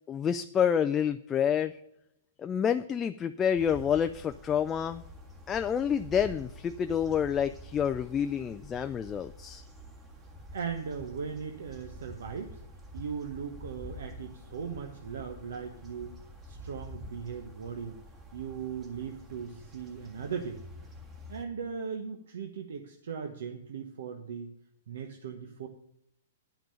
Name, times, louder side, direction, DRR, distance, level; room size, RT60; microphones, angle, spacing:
voice 1, 0.1-1.8 2.4-5.0 5.5-9.6, left 8 dB, 20° left, 8 dB, 0.3 m, -28 dB
sound 1, 3.5-21.4, left 1 dB, 15° right, 1.7 m, -48 dB
voice 2, 10.5-12.6 12.9-16.2 16.4-18.0 18.3-20.6 21.3-24.5 24.9-25.7, right 6 dB, 75° right, 5 dB, 1.1 m, -38 dB
10.5 x 6.0 x 6.9 m, 0.79 s
hypercardioid pair, 140°, 0 cm